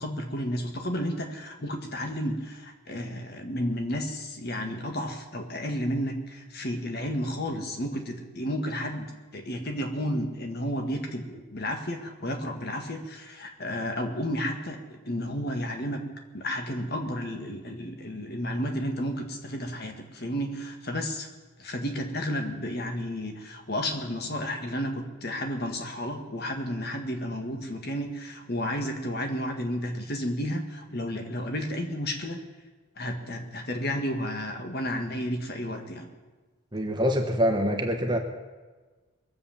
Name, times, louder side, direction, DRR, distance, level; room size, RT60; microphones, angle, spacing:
voice 1, 0.0-9.0 9.3-16.0 16.3-21.3 21.6-32.4 33.0-36.1, equal, 50° left, 4 dB, 1.8 m, -32 dB
voice 2, 36.7-38.2, equal, 20° right, 4 dB, 1.3 m, -25 dB
22.0 x 7.8 x 7.2 m, 1.3 s
head